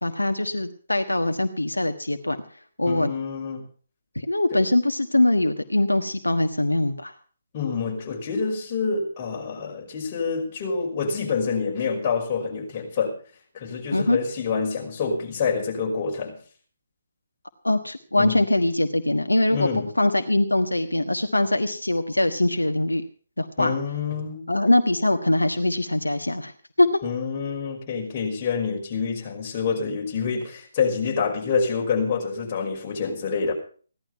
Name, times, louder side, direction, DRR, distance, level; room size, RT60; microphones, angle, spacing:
voice 1, 0.0-2.4 2.8-3.1 4.1-7.1 13.9-14.2 17.6-19.7 20.0-23.0 23.4-23.7 24.5-26.5 26.8-26.9, left 1 dB, 90° left, 7 dB, 1.3 m, -22 dB
voice 2, 2.9-3.6 4.5-4.6 7.5-13.2 13.5-16.4 18.2-18.4 19.5-19.9 23.6-24.5 27.0-33.5, left 5 dB, 35° left, -1 dB, 5.4 m, -27 dB
16.5 x 11.5 x 5.6 m, 0.42 s
figure-of-eight pair, 145°, 0 cm